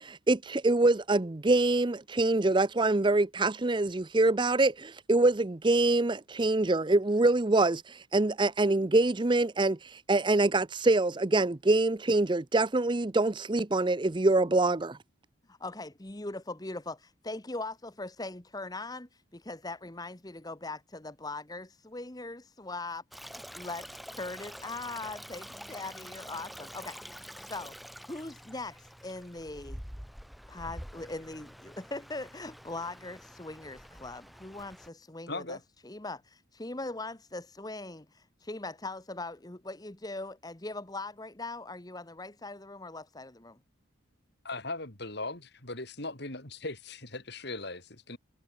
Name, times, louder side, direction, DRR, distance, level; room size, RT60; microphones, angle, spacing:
voice 1, 0.0-15.0, right 2 dB, 25° right, 0.5 m, -25 dB
voice 2, 15.5-23.0 23.5-23.9 24.2-27.7 28.1-29.8 30.5-35.6 35.8-43.6, left 2 dB, 20° left, 1.1 m, -40 dB
Stream, 23.1-34.9, equal, ahead, 1.7 m, -47 dB
voice 3, 35.3-35.6 44.4-48.2, left 2 dB, 55° left, 3.9 m, -39 dB
head